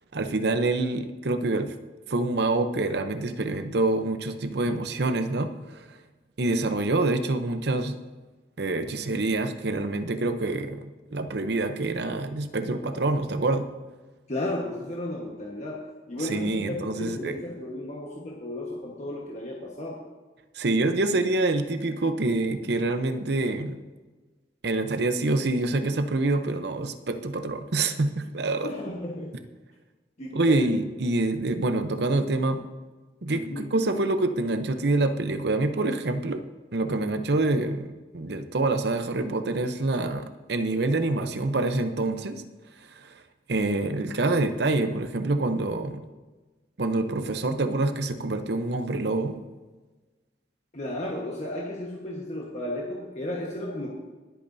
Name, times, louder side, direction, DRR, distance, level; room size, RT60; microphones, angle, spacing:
voice 1, 0.1-1.7 2.1-5.9 6.4-8.0 8.6-13.7 16.2-17.4 20.5-23.8 24.6-28.7 30.3-32.7 33.2-36.4 36.7-42.4 43.0-43.1 43.5-46.0 46.8-49.4, right 2 dB, 65° right, 8 dB, 0.8 m, -26 dB
voice 2, 14.3-15.8 16.1-20.0 28.6-29.4 30.2-30.8 33.3-33.7 50.7-53.9, left 1 dB, 40° left, -3 dB, 1.4 m, -34 dB
23.0 x 8.7 x 2.7 m, 1.3 s
head